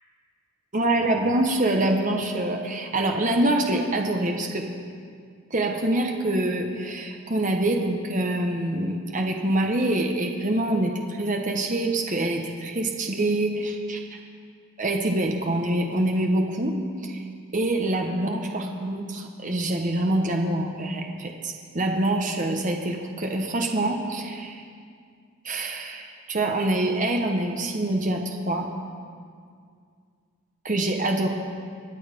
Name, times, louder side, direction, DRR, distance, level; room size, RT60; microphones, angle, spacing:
voice 1, 0.7-4.7 5.5-14.2 14.8-16.8 17.0-17.2 17.5-24.6 25.4-28.7 30.6-31.3, right 1 dB, 35° right, 2 dB, 1.0 m, -25 dB
24.0 x 8.8 x 5.2 m, 2.2 s
head